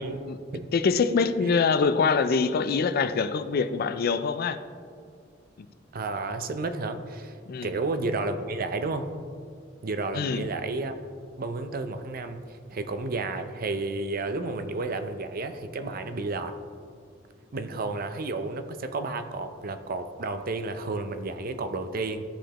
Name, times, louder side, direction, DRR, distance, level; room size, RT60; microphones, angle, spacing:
voice 1, 0.7-4.6 7.5-7.7 10.1-10.5, left 5 dB, 50° left, 12 dB, 0.4 m, -24 dB
voice 2, 5.9-7.4 7.6-9.1 9.8-11.0 11.4-16.5 17.5-22.2, right 3 dB, 50° right, 8 dB, 0.5 m, -31 dB
14.0 x 5.0 x 2.9 m, 2.2 s
head